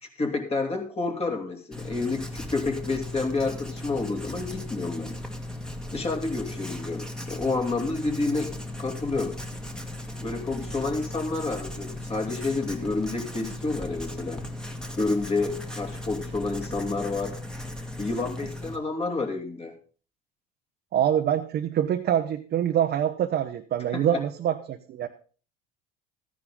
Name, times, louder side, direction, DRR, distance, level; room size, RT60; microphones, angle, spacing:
voice 1, 0.0-5.1 5.9-8.5 8.8-9.4 10.2-14.4 15.0-17.3 18.0-19.7 23.9-24.2, left 3 dB, 30° left, 3 dB, 2.9 m, -29 dB
Writing, 1.7-18.8, left 1 dB, 5° left, 1.7 m, -37 dB
voice 2, 20.9-25.1, right 10 dB, 50° right, 5 dB, 0.9 m, -25 dB
14.0 x 10.0 x 3.8 m, 0.39 s
supercardioid pair, 80°, 21 cm